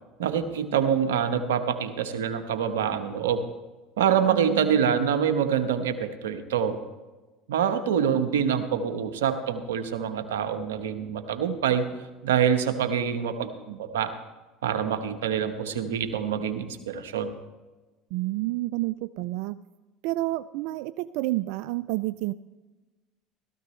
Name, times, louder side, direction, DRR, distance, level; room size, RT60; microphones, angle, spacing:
voice 1, 0.2-3.4 4.0-6.8 7.5-11.8 12.2-14.1 14.6-17.3, right 8 dB, 90° right, 9 dB, 1.1 m, -26 dB
voice 2, 4.3-4.8 18.1-19.6 20.0-22.3, right 18 dB, 70° right, 15 dB, 0.3 m, -29 dB
16.5 x 13.5 x 3.2 m, 1.2 s
hypercardioid pair, 85°, 0 cm